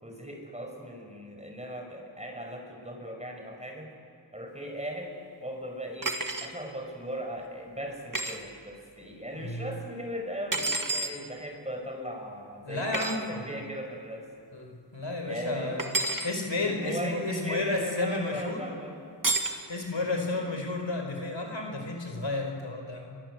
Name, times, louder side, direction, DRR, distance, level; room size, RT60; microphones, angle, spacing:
voice 1, 0.0-3.9 4.3-5.1 5.4-6.1 6.4-14.3 15.3-15.8 16.6-18.9 20.1-20.5, equal, 15° right, 2 dB, 6.1 m, -38 dB
sound 1, 6.0-6.5 8.1-8.4 10.5-11.1 12.9-13.2 15.8-16.3 19.2-19.6, right 2 dB, 45° right, 2.1 m, -29 dB
voice 2, 9.3-9.7 12.6-13.4 14.5-15.9 16.2-18.7 19.7-23.2, left 2 dB, 75° left, 3 dB, 4.6 m, -32 dB
29.5 x 24.0 x 8.0 m, 2.3 s
wide cardioid pair, 50°, 44 cm